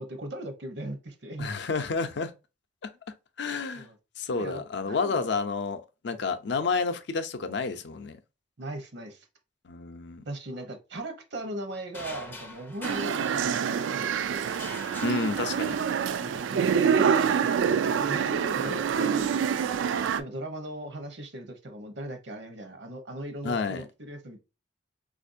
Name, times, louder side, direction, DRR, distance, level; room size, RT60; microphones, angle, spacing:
voice 1, 0.0-1.5 3.7-4.0 4.3-5.3 8.6-9.3 10.2-14.5 16.2-19.7 20.2-24.4, right 1 dB, 65° right, 0.8 m, -39 dB
voice 2, 1.4-2.3 2.8-2.9 3.4-3.9 4.2-8.2 9.6-10.2 15.0-15.8 18.6-18.8 23.4-23.8, left 4 dB, 65° left, 0.5 m, -30 dB
sound 1, 11.9-13.9 14.5-16.0, left 2 dB, 10° left, 0.4 m, -44 dB
sound 2, 12.8-20.2, right 7 dB, 80° right, 0.3 m, -26 dB
4.2 x 2.5 x 2.5 m
head